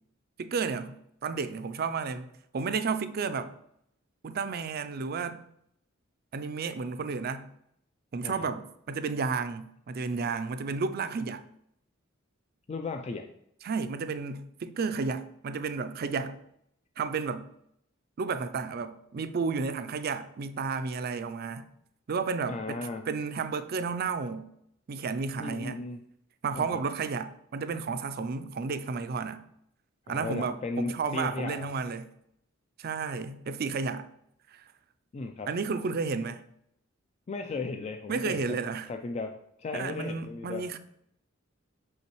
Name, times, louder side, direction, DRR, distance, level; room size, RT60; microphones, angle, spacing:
voice 1, 0.4-3.5 4.2-5.4 6.3-7.5 8.1-11.4 13.6-16.4 17.0-17.5 18.2-21.7 22.1-24.5 24.9-25.8 26.4-29.4 30.1-32.1 32.8-34.1 34.5-34.6 35.5-36.4 38.1-38.9 39.7-40.8, right 5 dB, 50° right, 0.4 m, -32 dB
voice 2, 8.2-8.5 12.7-13.3 22.5-23.1 25.4-26.1 26.5-26.8 30.1-31.7 35.1-35.5 37.3-38.6 38.9-40.7, left 3 dB, 30° left, 0.3 m, -36 dB
5.9 x 5.6 x 3.1 m
head